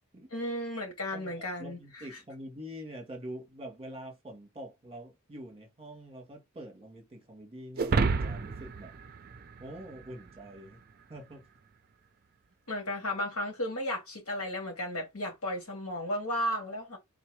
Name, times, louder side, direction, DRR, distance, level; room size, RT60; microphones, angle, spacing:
voice 1, 0.3-2.2 12.7-17.0, left 1 dB, 80° left, 2.4 m, -34 dB
voice 2, 1.1-8.9 9.6-10.8 11.1-11.5, equal, 25° right, 1.2 m, -45 dB
sound 1, 7.8-10.3, right 4 dB, 45° right, 0.4 m, -30 dB
3.9 x 2.7 x 4.6 m
head